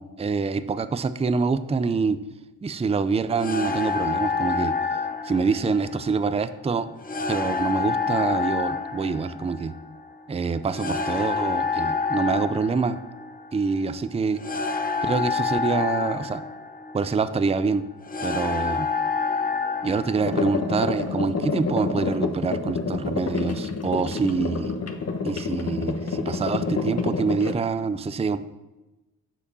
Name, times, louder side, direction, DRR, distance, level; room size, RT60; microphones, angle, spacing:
voice 1, 0.0-2.2 2.6-4.7 5.2-6.9 7.3-9.7 10.3-13.0 13.5-14.4 15.0-16.4 16.9-17.8 18.2-18.9 19.8-24.7 25.2-28.4, right 4 dB, 15° right, 13 dB, 0.5 m, -26 dB
sound 1, 3.4-21.1, left 4 dB, 20° left, 0.9 m, -28 dB
sound 2, 20.2-27.5, left 4 dB, 40° left, 1.2 m, -28 dB
6.9 x 5.1 x 6.8 m, 1.0 s
cardioid pair, 65°, 38 cm